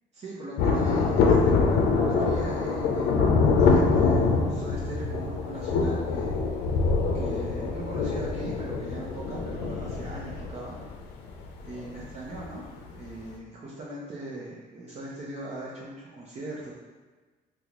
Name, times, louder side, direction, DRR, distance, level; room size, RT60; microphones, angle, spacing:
voice 1, 0.1-6.4 7.1-10.7 11.6-16.7, right 1 dB, 40° right, -6 dB, 0.8 m, -39 dB
Thunder, 0.6-12.6 12.8-12.9, left 4 dB, 80° left, 0.5 m, -24 dB
3.6 x 2.3 x 2.9 m, 1.3 s
cardioid pair, 110°, 17 cm